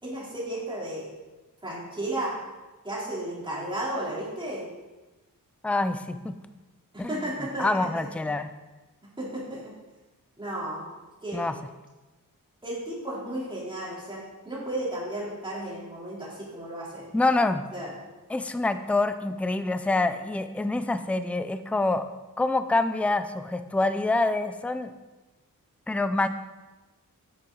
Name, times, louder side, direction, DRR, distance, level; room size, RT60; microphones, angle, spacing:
voice 1, 0.0-1.1 1.6-2.4 2.8-4.7 6.9-7.7 7.9-8.1 9.2-9.7 10.4-10.9 11.2-11.5 12.6-17.1 17.7-17.9, right 1 dB, 15° right, -7 dB, 3.4 m, -33 dB
voice 2, 5.6-6.4 7.0-7.3 7.6-8.5 11.3-11.5 17.1-17.6 18.3-22.0 22.4-24.9 25.9-26.3, left 2 dB, 5° left, 9 dB, 0.4 m, -26 dB
10.5 x 8.8 x 3.9 m, 1.2 s
wide cardioid pair, 155°, 34 cm